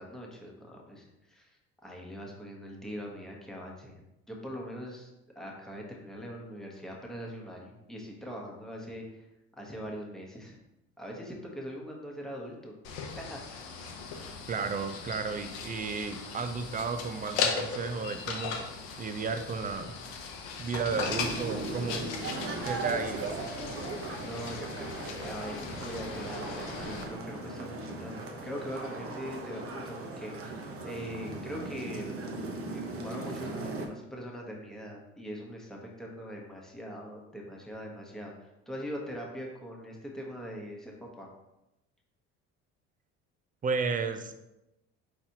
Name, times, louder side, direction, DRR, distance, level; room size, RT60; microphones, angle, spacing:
voice 1, 0.0-4.0 4.3-9.3 9.6-10.6 11.0-12.7 13.2-13.6 14.1-14.4 21.9-22.7 24.1-32.1 32.7-41.3, equal, ahead, -2 dB, 1.1 m, -42 dB
sound 1, 12.8-27.0, left 5 dB, 85° left, 0.8 m, -38 dB
voice 2, 14.5-18.6 19.0-19.9 20.6-22.1 22.6-23.5 43.6-44.4, right 5 dB, 25° right, 8 dB, 0.5 m, -33 dB
sound 2, 20.9-33.9, right 2 dB, 45° right, 0.9 m, -38 dB
4.3 x 4.1 x 2.8 m, 0.92 s
supercardioid pair, 80°, 32 cm